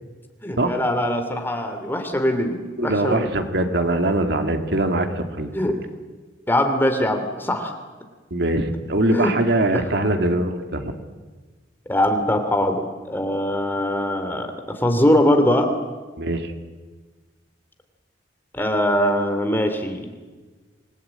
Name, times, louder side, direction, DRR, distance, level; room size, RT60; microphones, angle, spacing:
voice 1, 0.4-3.3 5.5-5.8 6.5-7.8 9.1-9.3 9.7-9.8 11.9-14.5 14.8-15.7 18.5-20.1, left 1 dB, 10° left, 6 dB, 2.9 m, -22 dB
voice 2, 2.8-5.6 8.3-10.9 16.2-16.5, right 1 dB, 65° right, 6 dB, 2.4 m, -22 dB
27.0 x 20.0 x 9.0 m, 1.4 s
head